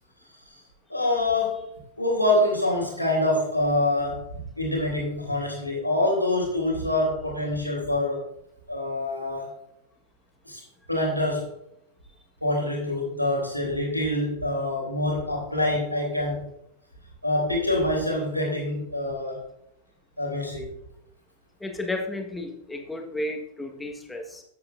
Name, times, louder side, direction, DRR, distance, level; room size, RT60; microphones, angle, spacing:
voice 1, 0.9-1.6 2.0-4.2 4.6-8.2 8.7-9.5 10.4-10.6 10.9-11.5 12.4-16.4 17.2-19.4 20.2-20.6, left 1 dB, 90° left, -1 dB, 3.2 m, -25 dB
voice 2, 21.6-24.4, left 2 dB, 10° left, 3 dB, 1.5 m, -33 dB
13.5 x 8.1 x 2.6 m, 0.76 s
figure-of-eight pair, 90°, 0 cm